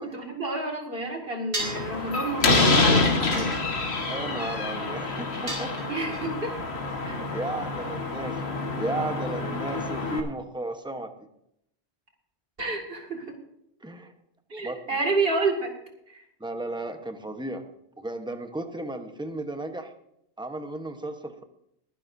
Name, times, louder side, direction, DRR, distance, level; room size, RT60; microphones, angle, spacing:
voice 1, 0.0-3.6 5.9-6.5 12.6-13.4 14.5-15.7 16.1-16.2, right 2 dB, 60° right, 1 dB, 2.6 m, -29 dB
sound 1, 1.5-1.9 3.3-4.0 5.5-6.2, right 1 dB, 80° right, 4.7 m, -34 dB
Slam, 1.6-10.2, left 3 dB, 75° left, 1.8 m, -27 dB
voice 2, 4.0-5.9 7.0-11.3 13.8-14.1 14.6-15.0 16.4-17.6 18.0-19.9 20.4-21.4, right 2 dB, 5° right, 6 dB, 1.0 m, -35 dB
22.0 x 10.5 x 2.7 m, 0.77 s
omnidirectional pair, 1.1 m